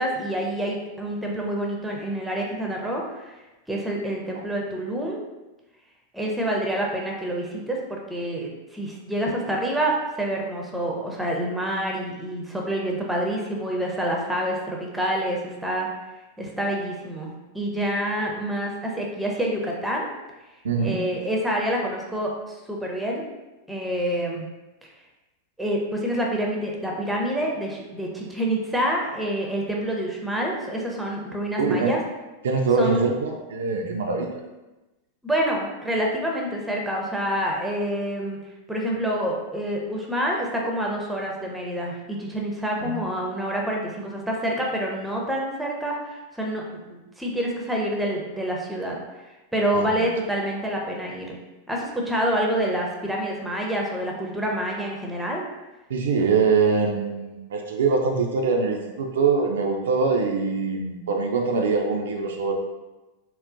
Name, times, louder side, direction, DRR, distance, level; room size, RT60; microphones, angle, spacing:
voice 1, 0.0-3.4 3.7-5.2 6.1-15.9 16.4-17.3 17.5-20.1 20.8-23.3 23.7-24.5 25.6-32.0 32.8-33.1 35.2-38.4 38.7-46.6 46.9-51.4 51.7-55.4, right 1 dB, 5° right, -1 dB, 0.5 m, -27 dB
voice 2, 20.6-21.0 31.6-31.9 32.4-34.3 42.8-43.0 49.7-49.9 55.9-62.6, right 4 dB, 65° right, 1 dB, 0.3 m, -23 dB
3.7 x 2.0 x 2.5 m, 1.1 s
figure-of-eight pair, 90°, 0 cm